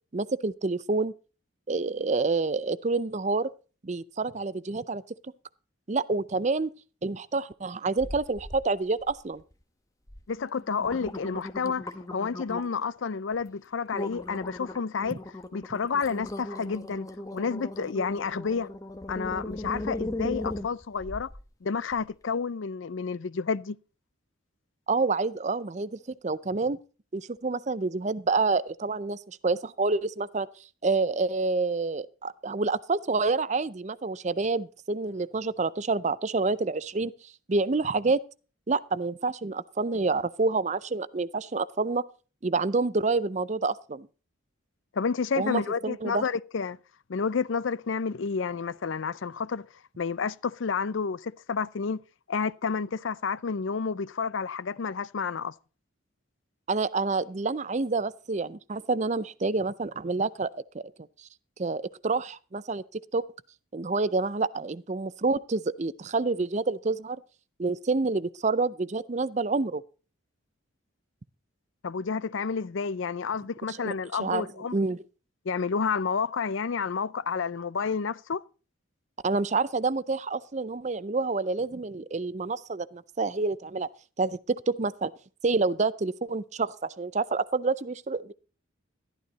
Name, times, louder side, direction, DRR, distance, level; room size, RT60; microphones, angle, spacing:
voice 1, 0.1-1.1 1.7-3.5 3.8-5.3 5.9-6.7 7.0-9.4 15.1-15.2 24.9-26.8 27.1-30.5 30.8-37.1 37.5-38.2 38.7-42.1 42.4-44.1 45.4-46.2 56.7-60.8 61.2-61.3 61.6-63.2 63.7-67.2 67.6-69.8 73.7-74.5 74.7-75.0 79.2-83.9 84.2-85.1 85.4-88.3, right 3 dB, 35° right, 0.5 m, -28 dB
sound 1, 8.0-8.6 9.0-9.5 10.1-10.2 10.6-12.9 13.3-13.5 13.9-21.4 21.9-22.0, left 1 dB, 15° left, 1.0 m, -37 dB
voice 2, 10.3-15.2 15.5-17.1 17.3-18.7 19.1-21.3 21.6-23.8 44.9-46.8 47.1-49.7 50.0-52.0 52.3-55.5 71.8-74.8 75.5-78.4, left 5 dB, 65° left, 0.5 m, -30 dB
13.0 x 12.5 x 4.1 m
head